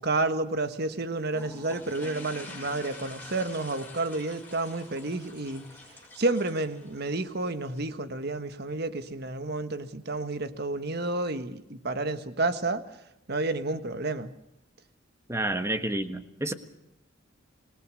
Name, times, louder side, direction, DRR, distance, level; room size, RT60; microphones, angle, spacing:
voice 1, 0.0-5.7 6.2-12.8 13.3-14.3, right 2 dB, 55° right, 10 dB, 1.4 m, -30 dB
sound 1, 1.3-7.8, left 2 dB, 10° left, 6.1 m, -47 dB
voice 2, 15.3-16.5, right 1 dB, 15° right, 8 dB, 1.4 m, -29 dB
27.0 x 19.0 x 6.4 m, 0.86 s
head